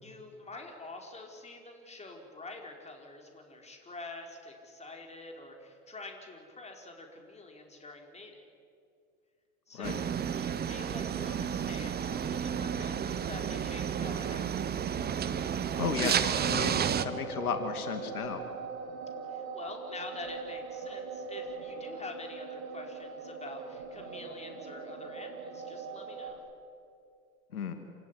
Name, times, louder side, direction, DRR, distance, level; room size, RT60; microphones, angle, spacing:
voice 1, 0.0-8.4 9.7-10.1 10.3-14.5 19.3-26.4, left 2 dB, 15° left, 2 dB, 4.9 m, -46 dB
sound 1, 9.8-17.0, right 8 dB, 20° right, 1.1 m, -31 dB
voice 2, 15.7-18.4 27.5-27.7, left 6 dB, 80° left, 7 dB, 2.6 m, -34 dB
sound 2, 16.3-26.3, right 5 dB, 50° right, 7.6 m, -41 dB
27.5 x 18.0 x 10.0 m, 2.3 s
hypercardioid pair, 95°, 43 cm